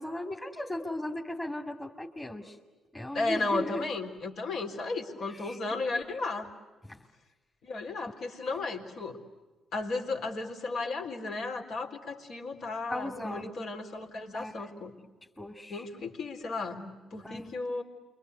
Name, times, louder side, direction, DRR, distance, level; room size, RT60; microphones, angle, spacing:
voice 1, 0.0-2.6 2.9-3.9 5.3-5.6 6.8-7.0 8.1-8.3 12.9-13.5 14.3-14.9 15.4-15.8 17.1-17.6, left 1 dB, 15° left, 1 dB, 2.4 m, -37 dB
voice 2, 3.1-6.5 7.6-9.2 9.7-14.9 15.7-17.8, left 3 dB, 65° left, 3 dB, 3.8 m, -34 dB
29.0 x 24.5 x 7.9 m, 1.3 s
cardioid pair, 90°, 0 cm